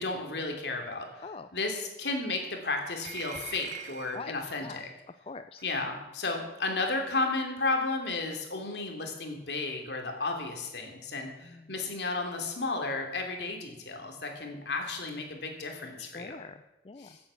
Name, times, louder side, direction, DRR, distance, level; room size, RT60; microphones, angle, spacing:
voice 1, 0.0-1.2 1.5-4.9 5.6-16.4 17.0-17.2, left 3 dB, 75° left, 3 dB, 3.0 m, -33 dB
sound 1, 3.0-4.3 5.6-5.7 6.7-6.8, right 8 dB, 40° right, 1.0 m, -43 dB
voice 2, 4.1-5.6 11.4-11.7 16.0-17.1, left 4 dB, 35° left, 11 dB, 0.4 m, -44 dB
16.0 x 8.6 x 7.0 m, 0.96 s
head